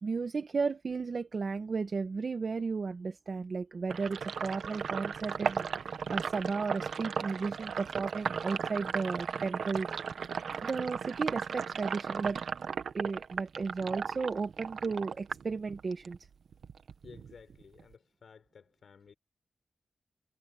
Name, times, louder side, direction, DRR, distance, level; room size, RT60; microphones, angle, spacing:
voice 1, 0.0-9.9 10.6-12.4 12.9-16.2, right 4 dB, 50° right, 1.1 m, -34 dB
Sink (filling or washing), 3.9-16.2 16.5-17.9, right 6 dB, 80° right, 1.2 m, -36 dB
voice 2, 17.0-19.1, left 6 dB, 65° left, 5.5 m, -55 dB
wide cardioid pair, 105°, 0 cm